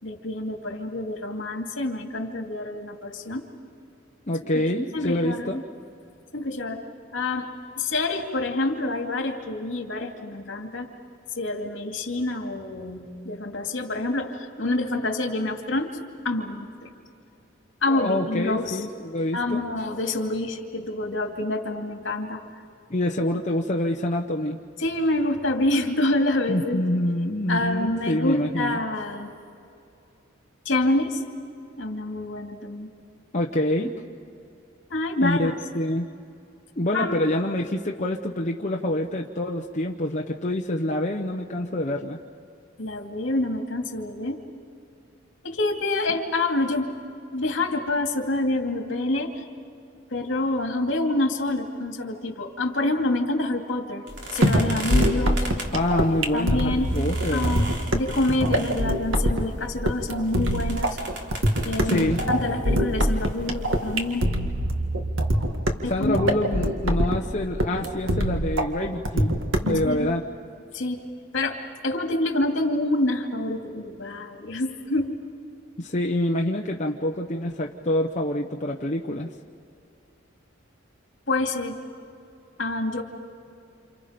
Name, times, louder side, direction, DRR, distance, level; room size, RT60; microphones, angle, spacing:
voice 1, 0.0-3.5 4.9-5.5 6.3-6.8 7.1-7.5 7.8-10.9 11.4-16.0 16.2-16.9 17.8-18.8 19.3-22.4 24.8-26.8 27.5-29.3 30.6-31.2 31.8-32.9 34.9-35.5 36.9-37.3 42.8-44.4 45.4-47.0 47.3-49.4 50.1-54.0 54.3-55.4 56.3-56.9 57.3-61.0 61.6-64.3 65.8-66.2 69.8-70.1 70.7-71.0 71.3-75.2 81.3-81.8 82.6-83.0, left 2 dB, 65° left, 3 dB, 2.6 m, -27 dB
voice 2, 4.3-5.6 17.9-19.6 22.9-24.6 26.5-28.8 33.3-33.9 35.2-36.1 36.8-42.2 55.7-57.6 61.8-62.2 65.9-69.4 69.6-70.2 75.8-79.3, left 1 dB, 35° left, 0 dB, 0.9 m, -26 dB
sound 1, 54.1-64.3, right 1 dB, 60° right, 3.6 m, -39 dB
sound 2, 54.4-69.8, equal, 75° right, 2.0 m, -24 dB
29.0 x 28.5 x 5.2 m, 2.5 s
head